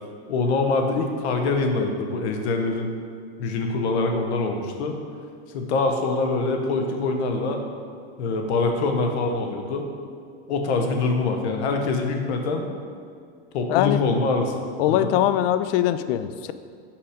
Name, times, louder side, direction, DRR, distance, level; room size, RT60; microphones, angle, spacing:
voice 1, 0.3-3.0 3.4-5.0 5.5-7.6 8.2-9.9 10.5-12.7 13.5-14.5 14.9-15.1, left 3 dB, 80° left, 4 dB, 1.0 m, -24 dB
voice 2, 13.7-14.0 14.8-16.5, left 12 dB, 60° left, 12 dB, 0.4 m, -22 dB
5.9 x 4.9 x 5.0 m, 2.2 s
supercardioid pair, 130°, 33 cm